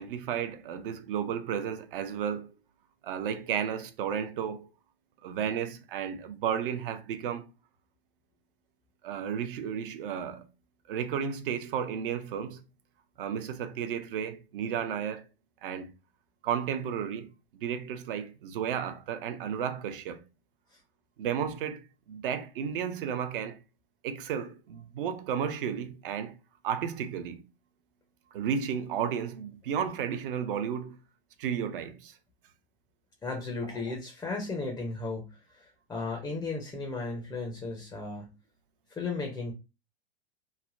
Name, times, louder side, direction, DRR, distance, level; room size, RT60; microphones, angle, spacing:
voice 1, 0.0-2.5 3.0-4.7 5.2-7.5 9.0-10.5 10.9-12.6 13.2-15.3 15.6-15.9 16.4-20.2 21.2-23.6 24.0-26.3 26.6-27.4 28.3-31.0 31.4-32.2 33.9-34.0, right 8 dB, 60° right, 0.6 m, -33 dB
voice 2, 33.2-38.3 38.9-39.5, left 3 dB, 10° left, 0.5 m, -35 dB
3.2 x 2.1 x 2.4 m
hypercardioid pair, 105°, 32 cm